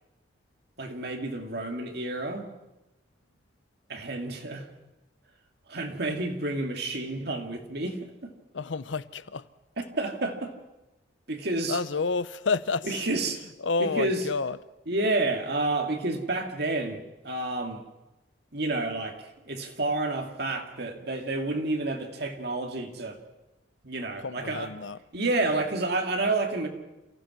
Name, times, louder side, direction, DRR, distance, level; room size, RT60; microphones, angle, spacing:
voice 1, 0.8-2.5 3.9-4.7 5.7-8.3 9.8-10.5 11.3-11.8 12.8-13.4 13.8-14.3 14.9-17.8 18.5-23.2 23.8-24.7 25.1-26.7, right 2 dB, 55° right, 2.4 m, -30 dB
voice 2, 8.5-9.4 11.7-12.9 13.6-14.6 24.2-25.0 25.5-25.6, left 4 dB, 75° left, 0.7 m, -29 dB
28.0 x 15.5 x 6.2 m
head